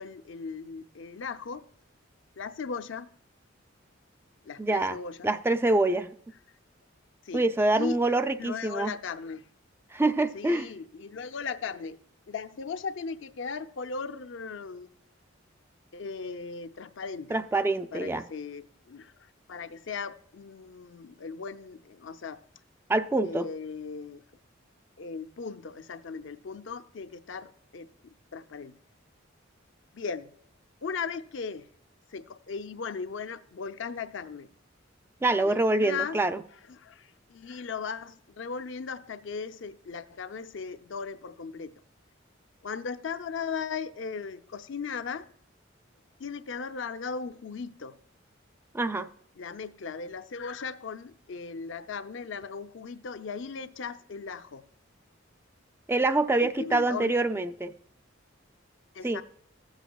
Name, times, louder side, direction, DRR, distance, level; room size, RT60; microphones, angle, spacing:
voice 1, 0.0-1.6 2.4-3.1 4.4-5.3 7.2-7.4 7.8-8.0 8.4-9.4 10.3-12.0 12.3-14.9 15.9-17.4 17.9-19.1 19.5-22.4 23.2-24.2 25.0-28.7 29.9-30.3 30.8-31.7 32.1-34.5 35.4-36.2 36.7-41.7 42.6-45.3 46.2-48.0 49.4-54.7 56.4-57.2 58.9-59.2, left 5 dB, 65° left, 0.5 m, -37 dB
voice 2, 4.6-5.0 5.2-6.1 7.3-8.9 9.9-10.7 17.3-18.2 22.9-23.5 35.2-36.4 48.7-49.1 55.9-57.7 59.0-59.2, right 2 dB, 10° right, 0.3 m, -25 dB
15.0 x 8.0 x 2.3 m
head